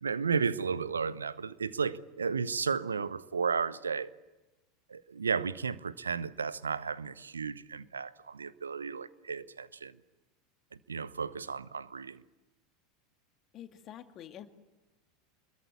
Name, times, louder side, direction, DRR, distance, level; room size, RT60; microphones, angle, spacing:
voice 1, 0.0-4.1 4.9-9.9 10.9-12.2, right 5 dB, 80° right, 1.0 m, -33 dB
voice 2, 13.5-14.5, left 11 dB, 40° left, 2.2 m, -47 dB
26.5 x 22.5 x 9.5 m
figure-of-eight pair, 80°, 0 cm